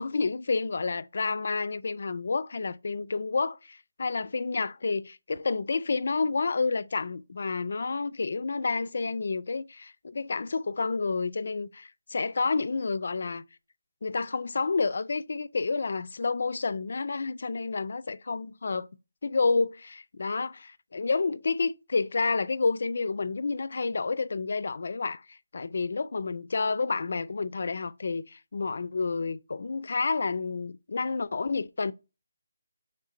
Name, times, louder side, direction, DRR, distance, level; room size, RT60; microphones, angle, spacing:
voice 1, 0.0-13.4 14.0-18.9 19.2-31.9, left 4 dB, 55° left, 0.3 m, -29 dB
3.7 x 3.2 x 4.3 m
figure-of-eight pair, 170°, 0 cm